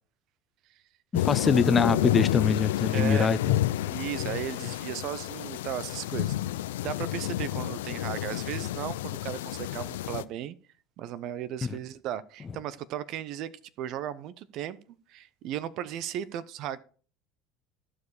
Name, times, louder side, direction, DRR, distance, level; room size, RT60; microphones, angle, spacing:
sound 1, 1.1-10.2, left 14 dB, 85° left, 0.4 m, -30 dB
voice 1, 1.1-3.6 11.6-11.8, left 5 dB, 30° left, 0.7 m, -24 dB
voice 2, 2.9-3.3 3.9-10.6 11.0-13.5 13.8-14.8 15.1-16.8, right 11 dB, 60° right, 0.6 m, -36 dB
14.0 x 4.9 x 4.8 m
hypercardioid pair, 85°, 0 cm